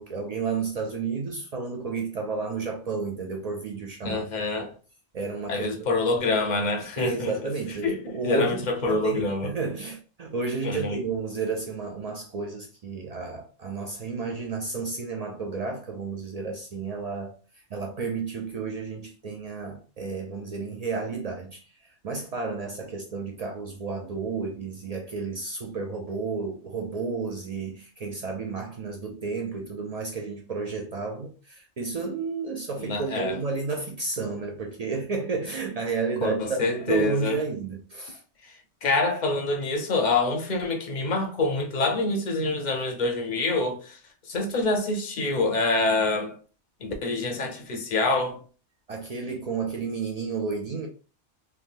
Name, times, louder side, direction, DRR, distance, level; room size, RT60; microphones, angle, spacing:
voice 1, 0.0-4.3 4.5-4.7 5.1-5.7 7.0-17.3 17.7-21.6 22.0-38.2 48.9-50.9, right 4 dB, 75° right, 0.3 m, -31 dB
voice 2, 4.0-4.7 5.5-7.5 7.8-9.5 10.6-11.0 32.8-33.4 36.2-37.4 38.4-38.5 38.8-44.0 44.3-46.4 46.8-48.4, left 3 dB, 50° left, 0.6 m, -26 dB
3.3 x 2.2 x 2.5 m
omnidirectional pair, 1.2 m